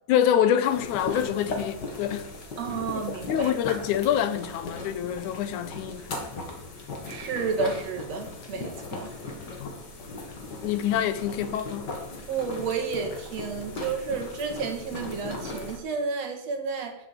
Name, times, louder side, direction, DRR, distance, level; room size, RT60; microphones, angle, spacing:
voice 1, 0.1-2.3 3.3-6.1 9.6-9.7 10.6-11.9, left 10 dB, 85° left, 2.3 m, -26 dB
sound 1, 0.6-15.8, left 3 dB, 40° left, 2.3 m, -38 dB
voice 2, 2.6-3.5 7.1-9.1 12.3-17.0, right 5 dB, 60° right, 2.9 m, -31 dB
9.6 x 7.4 x 8.3 m
omnidirectional pair, 3.4 m